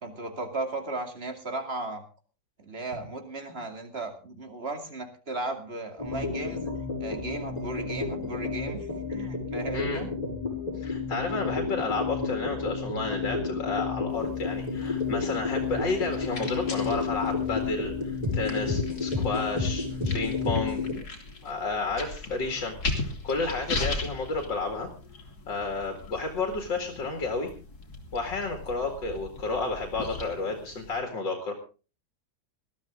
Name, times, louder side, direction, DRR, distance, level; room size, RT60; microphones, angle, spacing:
voice 1, 0.0-2.0 2.6-6.7 7.0-10.1, right 2 dB, 35° right, 5 dB, 2.7 m, -36 dB
sound 1, 6.0-20.9, left 4 dB, 20° left, 6.1 m, -31 dB
voice 2, 10.7-20.8 21.4-24.9 25.5-27.5 28.1-31.5, left 3 dB, 80° left, 4 dB, 2.8 m, -31 dB
sound 2, 14.1-31.0, left 3 dB, 55° left, 3.2 m, -39 dB
20.0 x 13.0 x 3.7 m, 0.35 s
omnidirectional pair, 1.9 m